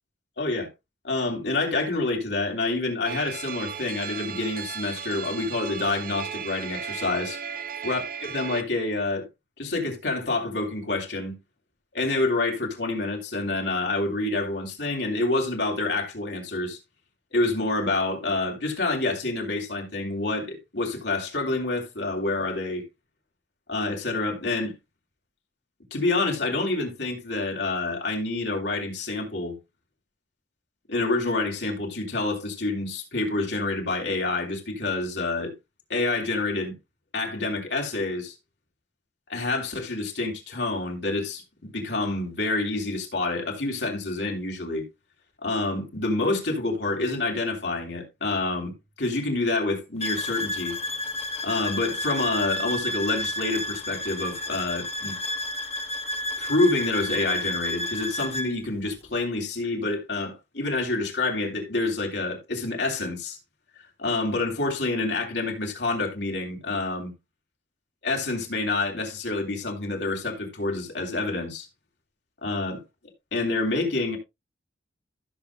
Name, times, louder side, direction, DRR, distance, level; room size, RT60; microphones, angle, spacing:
voice 1, 0.4-0.7 1.0-7.4 7.8-9.3 9.6-11.4 11.9-16.8 17.3-22.8 23.7-24.7 25.9-29.6 30.9-35.5 35.9-36.8 37.1-38.4 39.3-44.8 45.4-50.8 51.4-55.2 56.4-63.4 64.0-67.1 68.0-71.7 72.4-72.8 73.3-74.2, left 2 dB, 70° left, 3.3 m, -27 dB
sound 1, 3.0-8.6, right 7 dB, 50° right, 0.7 m, -35 dB
sound 2, 50.0-58.5, left 1 dB, 35° left, 1.1 m, -31 dB
15.5 x 6.9 x 2.3 m
head